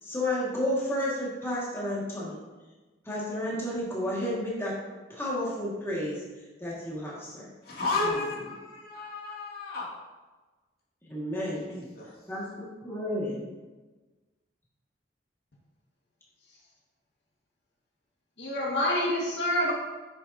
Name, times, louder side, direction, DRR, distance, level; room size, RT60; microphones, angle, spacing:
voice 1, 0.0-2.4 3.1-4.7 5.1-6.2 6.6-7.5 8.1-8.2 11.1-11.7 12.3-13.4, left 1 dB, 15° left, -6 dB, 2.0 m, -31 dB
voice 2, 7.6-9.9 11.7-12.2, left 3 dB, 60° left, -5 dB, 2.6 m, -32 dB
voice 3, 18.4-19.7, left 1 dB, 85° left, -3 dB, 1.8 m, -27 dB
9.5 x 6.8 x 2.8 m, 1.2 s
head